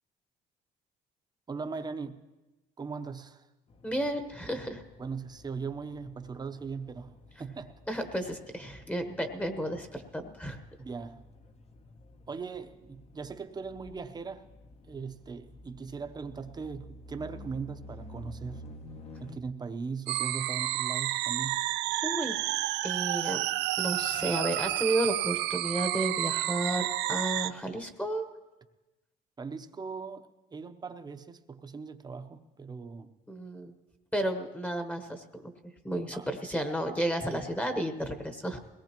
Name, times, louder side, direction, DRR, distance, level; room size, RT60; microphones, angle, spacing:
voice 1, 1.5-2.2 2.8-3.5 5.0-7.1 7.4-7.8 10.8-11.2 12.3-14.4 14.9-18.6 19.2-21.6 29.4-33.1 36.1-36.3, right 5 dB, 25° right, 0.8 m, -39 dB
sound 1, 3.7-19.4, left 1 dB, 40° left, 0.9 m, -51 dB
voice 2, 3.8-4.8 7.9-10.6 22.0-22.4 22.8-23.4 23.8-28.3 33.3-33.7 34.1-38.6, right 1 dB, 10° left, 1.1 m, -32 dB
sound 2, 20.1-27.5, right 16 dB, 90° right, 0.4 m, -30 dB
21.5 x 18.0 x 3.0 m
cardioid pair, 110°, 17 cm